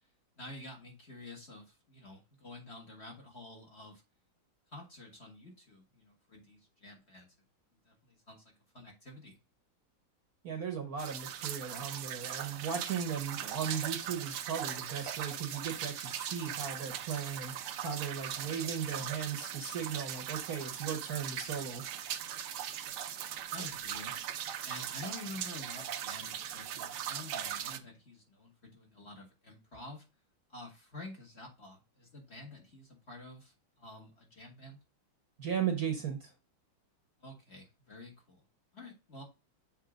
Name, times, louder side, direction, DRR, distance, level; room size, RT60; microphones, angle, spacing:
voice 1, 0.4-4.0 4.7-7.3 7.9-8.4 8.7-9.4 23.5-24.4 24.6-30.0 30.5-34.8 37.2-38.4 38.7-39.2, left 2 dB, 30° left, 0 dB, 1.8 m, -49 dB
voice 2, 10.4-21.8 35.4-36.3, right 7 dB, 50° right, 3 dB, 1.4 m, -37 dB
sound 1, 11.0-27.8, right 10 dB, 80° right, 1.6 m, -39 dB
7.5 x 3.3 x 5.0 m, 0.27 s
omnidirectional pair, 2.3 m